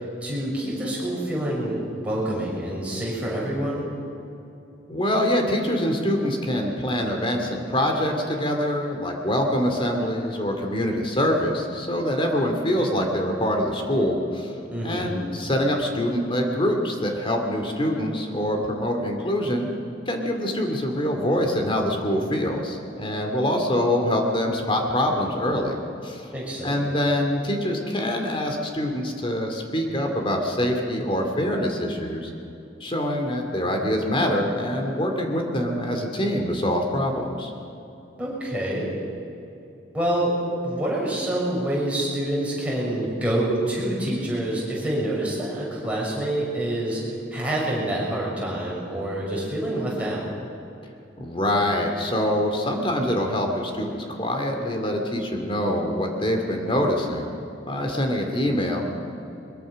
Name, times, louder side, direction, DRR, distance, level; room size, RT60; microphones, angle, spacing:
voice 1, 0.2-3.8 14.7-15.1 26.3-26.8 38.2-38.9 39.9-40.3 40.6-50.2, right 1 dB, 5° right, -5 dB, 6.3 m, -27 dB
voice 2, 4.9-14.5 14.8-19.7 20.1-26.2 26.6-32.3 32.8-37.5 51.2-57.2 57.7-58.9, left 1 dB, 25° left, 2 dB, 2.4 m, -25 dB
22.5 x 22.5 x 6.4 m, 2.8 s
head